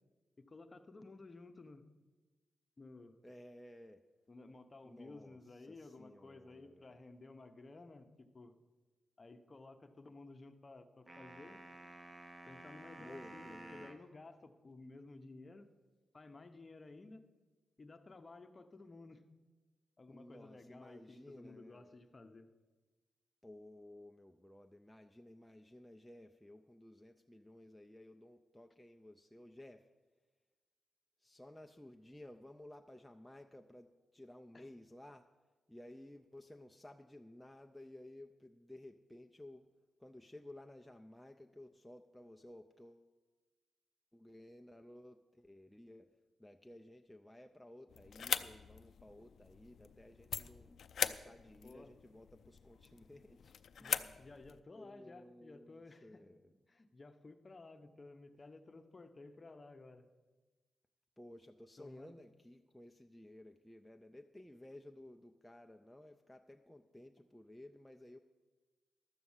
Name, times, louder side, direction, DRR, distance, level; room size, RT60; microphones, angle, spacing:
voice 1, 0.4-1.9 2.8-3.2 4.3-8.5 9.2-11.6 12.5-15.7 16.1-17.2 17.8-19.2 20.0-22.5 34.5-34.6 51.6-51.9 53.8-56.2 56.7-60.1 61.8-62.1, left 3 dB, 30° left, 7 dB, 0.9 m, -55 dB
voice 2, 3.2-4.0 4.8-7.0 13.0-13.9 20.1-22.0 23.4-29.8 31.2-35.3 35.7-39.7 40.0-43.1 44.1-46.1 46.4-53.5 53.8-54.2 54.7-56.5 61.2-68.2, left 1 dB, 5° left, 4 dB, 0.5 m, -56 dB
sound 1, 11.1-14.1, right 2 dB, 30° right, 0.9 m, -53 dB
sound 2, 47.9-54.6, left 7 dB, 70° left, 0.4 m, -42 dB
12.5 x 7.5 x 7.2 m, 1.3 s
cardioid pair, 105°, 0 cm